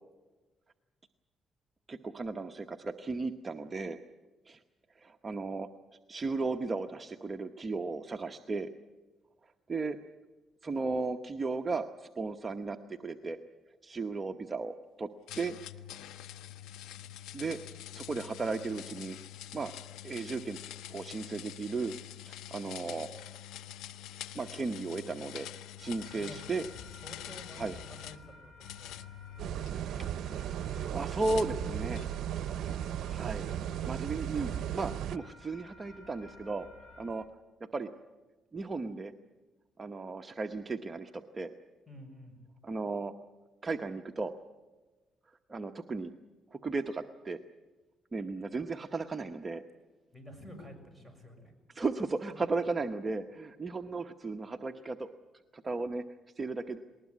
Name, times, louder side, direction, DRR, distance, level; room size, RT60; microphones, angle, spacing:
voice 1, 1.9-4.0 4.5-4.6 5.0-5.7 6.1-8.7 9.7-10.0 10.6-13.4 13.8-15.1 15.3-15.6 17.3-17.6 17.9-19.2 19.5-19.7 20.0-20.6 20.9-21.9 22.2-23.1 24.3-25.5 25.8-26.7 27.6-27.8 30.0-30.1 30.9-32.2 33.1-33.5 33.9-36.7 37.0-37.2 37.7-37.9 38.5-39.1 39.8-41.5 42.6-43.1 43.6-44.3 45.5-46.1 46.5-47.4 48.1-49.6 51.7-55.1 55.5-56.0 56.4-56.8, right 3 dB, 30° right, 5 dB, 1.0 m, -35 dB
sound 1, 15.3-28.2 28.6-30.1 31.2-32.2, left 12 dB, 90° left, 0.8 m, -46 dB
sound 2, 25.8-37.1, left 2 dB, 75° left, 6.6 m, -54 dB
voice 2, 27.0-30.0 41.9-42.4 50.1-51.5 52.3-52.5, left 1 dB, 5° left, 6 dB, 6.7 m, -51 dB
sound 3, 29.4-35.2, right 10 dB, 75° right, 0.7 m, -36 dB
20.0 x 19.5 x 9.6 m, 1.2 s
cardioid pair, 90°, 0 cm